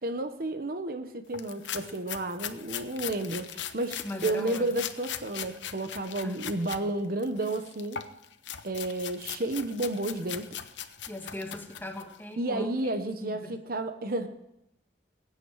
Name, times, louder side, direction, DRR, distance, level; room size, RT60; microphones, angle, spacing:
voice 1, 0.0-8.0 8.6-10.6 12.4-14.3, right 2 dB, 50° right, 8 dB, 1.0 m, -32 dB
sound 1, 1.3-6.8 7.2-12.2, left 9 dB, 80° left, 0.9 m, -40 dB
voice 2, 4.0-4.7 6.2-6.4 11.1-12.7 13.2-13.6, left 1 dB, 10° left, 4 dB, 1.5 m, -39 dB
21.0 x 9.2 x 4.8 m, 0.83 s
head